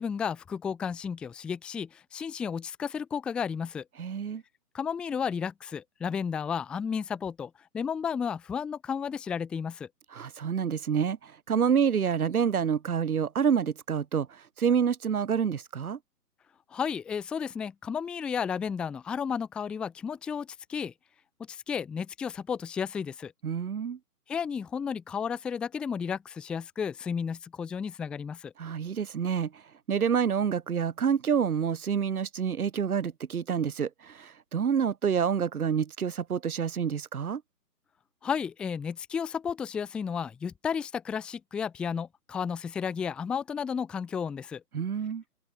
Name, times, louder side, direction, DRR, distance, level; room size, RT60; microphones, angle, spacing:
voice 1, 0.0-3.8 4.7-9.9 16.7-20.9 21.5-23.3 24.3-28.5 38.2-44.6, left 7 dB, ahead, 0.9 m, -33 dB
voice 2, 4.0-4.4 10.1-16.0 23.4-24.0 28.6-29.6 29.9-37.4 44.7-45.2, right 7 dB, 60° right, 1.3 m, -28 dB
hypercardioid pair, 160°, 48 cm